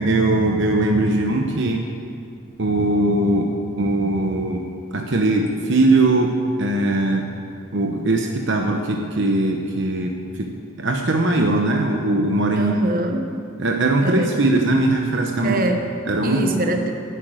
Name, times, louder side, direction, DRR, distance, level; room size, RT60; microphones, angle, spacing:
voice 1, 0.0-1.8 2.6-4.6 4.9-7.3 7.7-10.1 10.4-10.5 10.8-12.8 13.6-15.6 16.1-16.5, right 2 dB, 60° right, 2 dB, 0.9 m, -20 dB
voice 2, 12.5-13.4 14.0-14.3 15.4-15.9 16.2-16.9, right 1 dB, 45° right, 5 dB, 1.2 m, -23 dB
11.5 x 9.0 x 9.0 m, 2.3 s
head